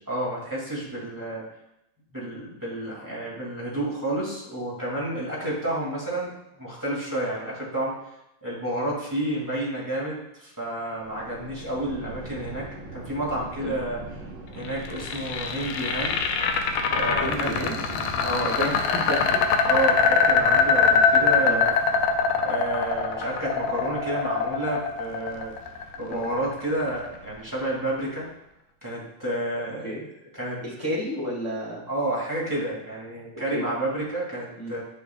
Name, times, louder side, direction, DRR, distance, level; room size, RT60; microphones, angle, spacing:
voice 1, 0.1-1.5 2.1-8.0 8.4-14.0 14.5-16.2 16.8-17.6 18.2-18.7 19.6-21.7 22.4-25.5 26.0-28.3 28.8-29.9 30.4-30.6 31.9-34.8, right 1 dB, 10° right, -6 dB, 1.4 m, -30 dB
Thunder, 10.9-28.3, right 1 dB, 65° right, 2.2 m, -42 dB
sound 1, 14.6-26.7, left 5 dB, 85° left, 2.1 m, -23 dB
voice 2, 17.1-17.8 18.4-19.4 21.4-21.7 26.1-26.3 29.8-30.0 30.6-31.8 33.3-33.6 34.6-34.7, equal, 25° left, -6 dB, 0.5 m, -31 dB
10.5 x 5.7 x 2.3 m, 0.84 s
omnidirectional pair, 3.4 m